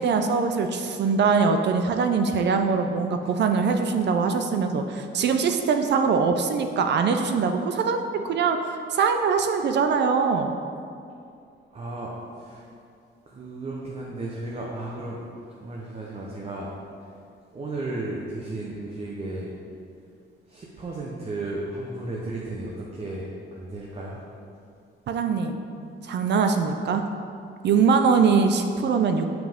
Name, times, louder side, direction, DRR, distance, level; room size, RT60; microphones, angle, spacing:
voice 1, 0.0-8.6 8.9-10.6 25.1-25.6 26.0-27.0 27.6-29.3, right 5 dB, 60° right, 6 dB, 0.5 m, -22 dB
voice 2, 11.7-12.6 13.3-15.2 15.5-16.7 17.0-17.1 17.5-19.5 20.5-23.3 23.5-24.2, right 2 dB, 30° right, -3 dB, 0.7 m, -34 dB
7.3 x 6.0 x 3.6 m, 2.4 s
cardioid pair, 155°, 20 cm